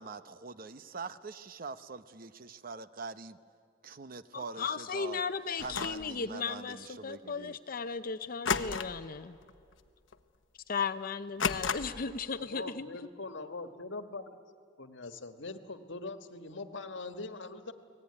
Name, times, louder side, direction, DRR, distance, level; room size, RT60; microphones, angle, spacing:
voice 1, 0.0-3.4 3.8-5.2 5.6-7.6, right 4 dB, 50° right, 0.8 m, -44 dB
voice 2, 4.3-9.4 10.7-12.9, left 5 dB, 50° left, 0.7 m, -36 dB
sound 1, 5.6-6.1 8.5-9.1 9.4-9.7 10.1-10.2 11.4-12.1, left 6 dB, 90° left, 1.0 m, -33 dB
voice 3, 12.3-14.2 14.8-17.7, left 3 dB, 70° left, 1.6 m, -42 dB
30.0 x 19.5 x 9.8 m
head